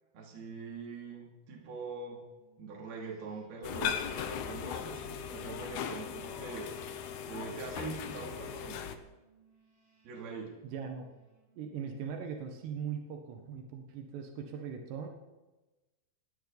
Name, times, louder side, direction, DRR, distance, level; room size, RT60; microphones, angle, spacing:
voice 1, 0.1-2.2 2.6-7.0 7.3-8.8 10.0-10.5, right 4 dB, 65° right, -1 dB, 4.7 m, -43 dB
sound 1, 2.3-12.2, right 4 dB, 45° right, 6.5 m, -68 dB
sound 2, 3.6-9.0, left 8 dB, 85° left, 1.6 m, -38 dB
voice 2, 10.6-11.1 11.6-15.1, right 7 dB, 85° right, 4 dB, 3.6 m, -40 dB
19.5 x 16.5 x 4.0 m, 1.1 s
omnidirectional pair, 4.7 m